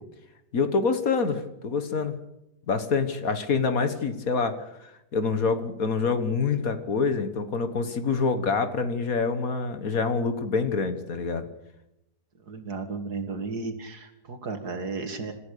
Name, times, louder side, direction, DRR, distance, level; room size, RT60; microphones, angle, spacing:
voice 1, 0.5-2.2 2.7-4.7 5.1-11.5, left 4 dB, 55° left, 9 dB, 1.7 m, -26 dB
voice 2, 12.5-15.3, right 4 dB, 65° right, 6 dB, 2.7 m, -34 dB
27.5 x 14.5 x 6.8 m, 0.89 s
omnidirectional pair, 1.9 m